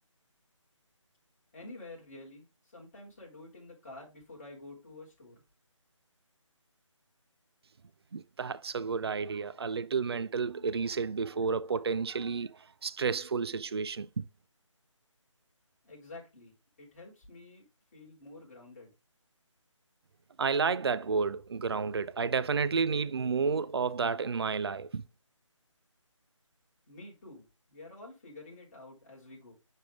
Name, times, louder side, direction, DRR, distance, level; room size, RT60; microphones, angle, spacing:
voice 1, 1.5-2.5 2.7-5.4 15.8-17.7 17.9-18.9 26.9-29.6, left 2 dB, 30° left, 4.4 m, -49 dB
voice 2, 8.1-14.3 20.4-25.1, right 5 dB, 50° right, 0.5 m, -31 dB
10.5 x 3.6 x 3.6 m
figure-of-eight pair, 160°, 17 cm